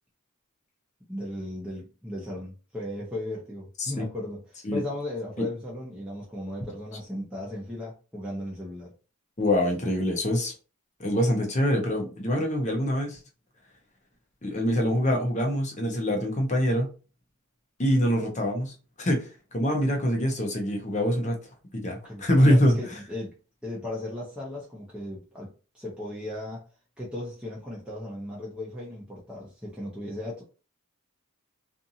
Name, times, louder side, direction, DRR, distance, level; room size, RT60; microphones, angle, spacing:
voice 1, 1.1-8.9 22.0-23.3 23.6-26.7 27.0-30.4, left 1 dB, 5° right, 0.7 m, -36 dB
voice 2, 9.4-10.5 11.0-13.2 14.4-16.9 17.8-21.4 21.7-22.8, equal, 30° left, 0.7 m, -25 dB
2.6 x 2.5 x 2.7 m
head